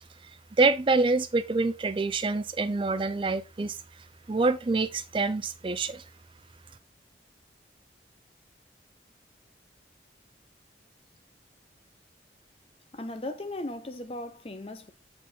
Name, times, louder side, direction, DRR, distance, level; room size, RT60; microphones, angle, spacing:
voice 1, 0.6-3.8 4.3-6.0, right 3 dB, 30° right, 0.4 m, -26 dB
voice 2, 12.9-14.9, left 1 dB, 35° left, 0.7 m, -37 dB
7.4 x 4.3 x 3.8 m
head